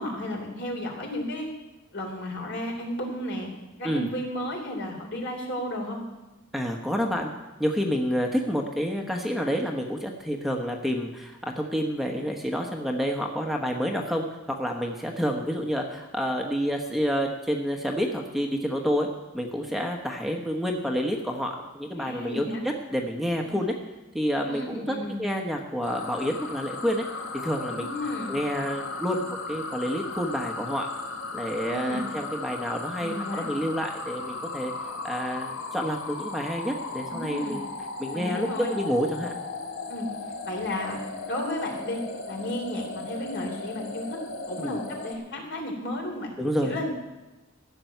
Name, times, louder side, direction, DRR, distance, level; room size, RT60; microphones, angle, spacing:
voice 1, 0.0-1.5 1.9-3.5 3.8-6.0 22.0-22.6 23.4-23.6 24.4-25.2 27.7-28.3 31.7-32.1 33.0-33.4 37.0-37.6 38.1-38.7 39.9-40.1 40.5-42.0 42.3-44.2 44.5-46.4 46.6-47.0, left 1 dB, 60° left, 1 dB, 3.5 m, -33 dB
voice 2, 6.5-7.3 7.6-19.1 19.3-23.7 24.1-27.0 27.4-27.9 28.3-30.9 31.3-34.7 35.0-37.7 38.0-39.4 44.6-44.8 46.4-46.7, equal, ahead, 1 dB, 1.1 m, -29 dB
sound 1, 25.8-45.1, left 3 dB, 80° left, 1.7 m, -36 dB
15.0 x 6.9 x 9.2 m, 1.1 s
head